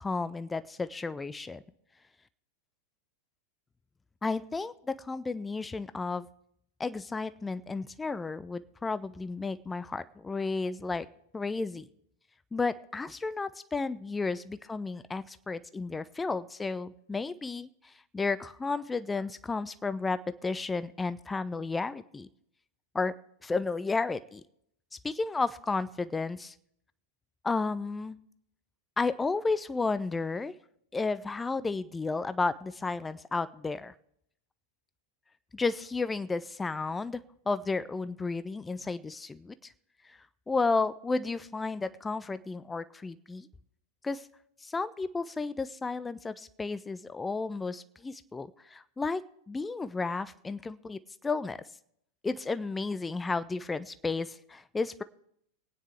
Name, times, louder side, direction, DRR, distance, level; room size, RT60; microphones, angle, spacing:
voice 1, 0.0-1.6 4.2-6.3 6.8-11.1 11.3-11.9 12.5-22.3 22.9-23.2 23.4-24.4 25.0-26.5 27.4-28.2 29.0-30.5 30.9-33.9 35.5-39.7 40.1-40.2 40.5-43.5 44.0-44.3 44.6-49.2 49.5-51.6 52.2-55.0, left 3 dB, 10° left, 15 dB, 0.4 m, -32 dB
23.0 x 9.3 x 3.4 m, 0.73 s
figure-of-eight pair, 90°, 0 cm